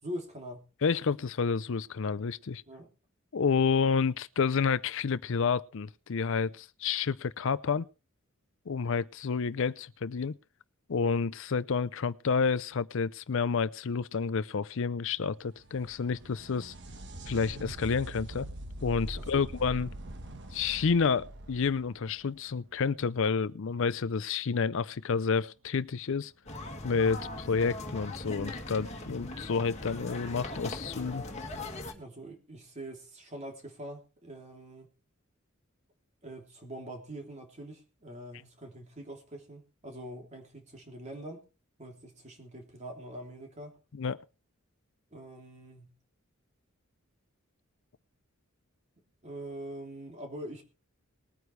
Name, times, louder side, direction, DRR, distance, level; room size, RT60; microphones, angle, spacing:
voice 1, 0.0-0.7 2.7-2.9 19.1-19.5 31.9-34.9 36.2-41.4 41.8-43.8 45.1-45.9 49.2-50.6, right 1 dB, 35° right, 3.1 m, -44 dB
voice 2, 0.8-2.6 3.3-7.9 8.7-10.4 10.9-16.7 17.3-18.5 18.8-19.9 20.5-26.3 26.8-31.2 43.9-44.2, left 5 dB, 65° left, 0.5 m, -29 dB
sound 1, 15.3-22.9 26.3-26.4 27.5-27.6, right 1 dB, 55° right, 1.3 m, -43 dB
sound 2, 26.5-31.9, left 2 dB, 30° left, 2.0 m, -40 dB
21.0 x 9.4 x 3.3 m
head